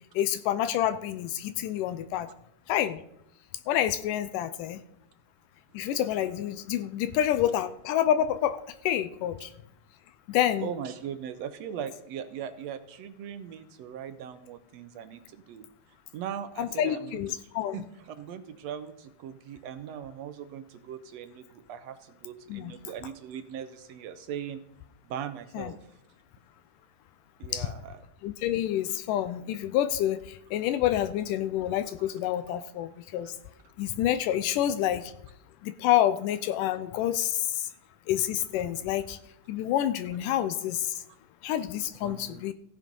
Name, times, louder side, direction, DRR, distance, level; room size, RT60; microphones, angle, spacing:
voice 1, 0.2-2.3 2.7-3.0 3.7-4.8 5.7-9.5 10.3-10.7 16.6-17.8 22.5-22.7 25.6-25.7 27.5-27.7 28.2-33.3 33.8-35.1 35.6-37.7 38.1-39.2 39.5-40.9 41.4-42.5, left 11 dB, 85° left, 12 dB, 2.2 m, -28 dB
voice 2, 10.6-15.7 16.1-24.6 25.0-25.8 27.4-28.0 32.0-32.1 42.0-42.4, right 8 dB, 75° right, 11 dB, 1.6 m, -40 dB
15.5 x 7.5 x 5.3 m, 0.78 s
omnidirectional pair, 3.8 m